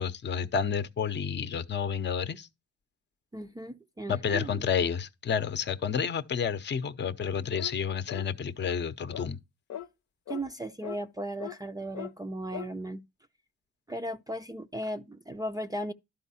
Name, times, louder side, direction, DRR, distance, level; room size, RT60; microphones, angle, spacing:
voice 1, 0.0-2.5 4.1-9.4, left 7 dB, 35° left, 0.8 m, -30 dB
voice 2, 3.3-4.7 10.3-13.0 13.9-15.9, right 1 dB, 15° right, 0.5 m, -36 dB
sound 1, 7.6-7.8 8.1-8.3 8.6-8.8 9.1-9.3 9.7-9.9 10.3-10.4 10.8-11.0 11.4-11.6 11.9-12.1 12.5-12.7, left 11 dB, 65° left, 0.8 m, -39 dB
11.5 x 4.6 x 4.2 m
cardioid pair, 90°, 30 cm